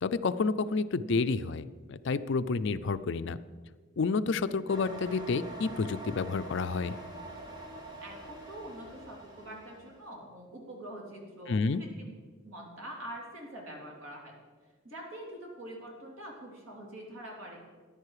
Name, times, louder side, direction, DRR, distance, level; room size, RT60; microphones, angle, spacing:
voice 1, 0.0-3.4 4.0-6.9 11.5-11.8, left 4 dB, 60° left, 13 dB, 0.4 m, -30 dB
sound 1, 4.7-10.0, right 1 dB, 20° right, 1.7 m, -45 dB
voice 2, 8.0-12.1 12.4-14.4 14.8-17.6, right 1 dB, 75° right, -1 dB, 3.3 m, -45 dB
14.5 x 10.5 x 4.9 m, 1.5 s
head